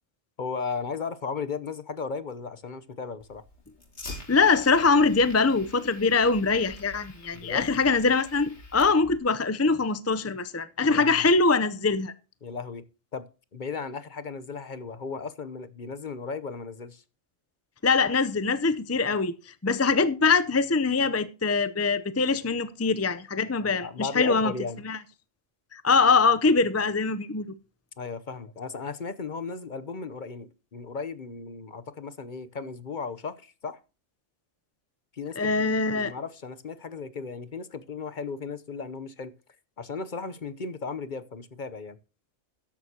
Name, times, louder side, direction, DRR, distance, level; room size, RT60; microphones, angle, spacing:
voice 1, 0.4-3.4 7.3-7.7 10.8-11.3 12.4-12.8 13.1-13.3 13.5-17.0 23.6-24.8 28.0-33.8 35.1-39.3 39.8-42.0, left 5 dB, 45° left, 0.9 m, -36 dB
Fire, 3.2-9.2, left 2 dB, 65° left, 2.9 m, -46 dB
voice 2, 4.3-12.1 17.8-24.5 24.8-25.0 25.7-27.5 35.4-36.1, left 4 dB, 20° left, 0.4 m, -23 dB
13.5 x 11.0 x 2.9 m
omnidirectional pair, 1.3 m